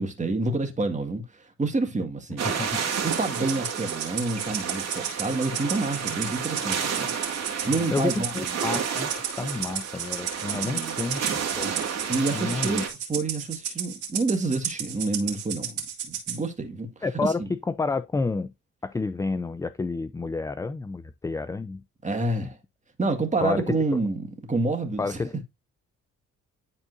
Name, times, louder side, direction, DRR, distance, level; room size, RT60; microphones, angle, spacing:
voice 1, 0.0-2.5 3.0-7.1 7.7-8.5 10.5-11.0 12.1-16.9 17.1-17.5 22.0-22.6 23.0-25.2, right 3 dB, 25° right, 1.9 m, -28 dB
voice 2, 2.4-2.8 7.7-11.7 12.3-12.9 17.0-18.5 18.8-21.8 22.4-22.5 23.4-24.0 25.0-25.4, left 3 dB, 10° left, 0.3 m, -30 dB
sound 1, 2.4-12.9, right 7 dB, 60° right, 2.2 m, -31 dB
Rattle (instrument), 2.9-16.4, right 8 dB, 75° right, 2.1 m, -33 dB
10.5 x 4.3 x 2.7 m
cardioid pair, 90°, 30 cm